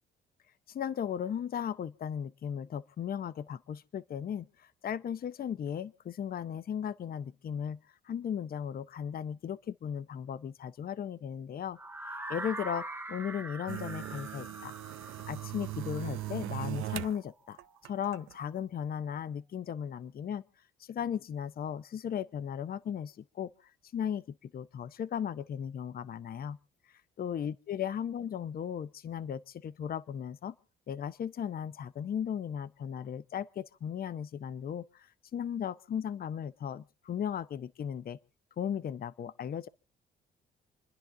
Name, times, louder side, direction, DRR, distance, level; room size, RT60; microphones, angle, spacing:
voice 1, 0.7-7.8 8.0-14.7 15.3-17.6 17.8-20.4 20.8-26.6 27.2-30.5 30.9-38.2 38.6-39.7, left 8 dB, 50° left, 0.7 m, -36 dB
sound 1, 11.8-17.7, right 2 dB, 10° right, 0.9 m, -43 dB
sound 2, 13.7-17.2 17.6-18.3, right 16 dB, 90° right, 0.6 m, -39 dB
28.0 x 10.5 x 3.7 m
cardioid pair, 90°, 20 cm